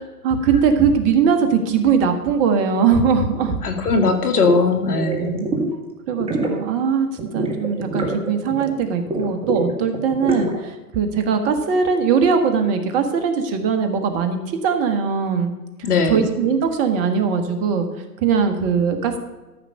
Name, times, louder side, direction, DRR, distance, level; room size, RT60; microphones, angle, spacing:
voice 1, 0.2-3.6 4.9-5.5 6.1-7.1 7.3-15.5 16.1-17.9 18.2-19.2, right 6 dB, 30° right, 7 dB, 1.6 m, -20 dB
voice 2, 3.6-5.3 15.8-16.2, left 4 dB, 70° left, 7 dB, 2.1 m, -19 dB
sound 1, 4.0-4.1 4.4-4.6 4.9-5.7 6.1-6.6 7.2-8.7 9.1-10.6, right 1 dB, 10° right, 1.7 m, -26 dB
13.5 x 5.8 x 6.5 m, 1.2 s
hypercardioid pair, 130°, 47 cm